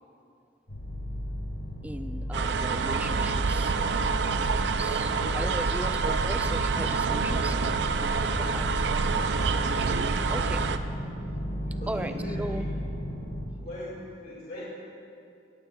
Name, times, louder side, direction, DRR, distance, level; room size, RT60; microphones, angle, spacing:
sound 1, 0.7-13.4, equal, 85° left, 1.8 m, -34 dB
voice 1, 1.8-3.8 4.8-9.1 9.6-10.7 11.9-12.7, right 1 dB, 10° right, 8 dB, 0.3 m, -38 dB
sound 2, 2.3-10.8, right 5 dB, 70° right, 0.5 m, -27 dB
voice 2, 8.1-8.5 11.8-12.7 13.6-14.6, left 1 dB, 55° left, -7 dB, 2.1 m, -41 dB
17.5 x 15.0 x 2.3 m, 2.7 s
head